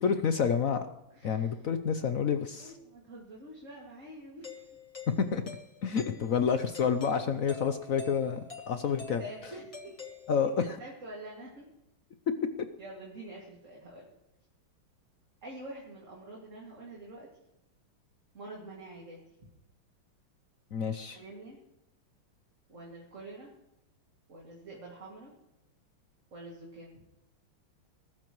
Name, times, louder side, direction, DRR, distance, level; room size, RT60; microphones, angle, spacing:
voice 1, 0.0-0.9 1.2-2.7 5.3-5.4 5.8-9.2 10.3-10.8 20.7-21.2, left 6 dB, 65° left, 9 dB, 0.8 m, -29 dB
voice 2, 1.1-1.6 2.6-4.8 9.2-9.9 10.4-11.7 12.8-14.1 15.4-17.3 18.3-19.5 21.1-21.6 22.7-23.5 24.3-25.3 26.3-27.0, right 1 dB, 35° right, -3 dB, 2.6 m, -46 dB
Doorbell, 4.4-10.8, left 3 dB, 25° left, 0.9 m, -48 dB
20.0 x 13.5 x 3.1 m, 0.88 s
omnidirectional pair, 2.3 m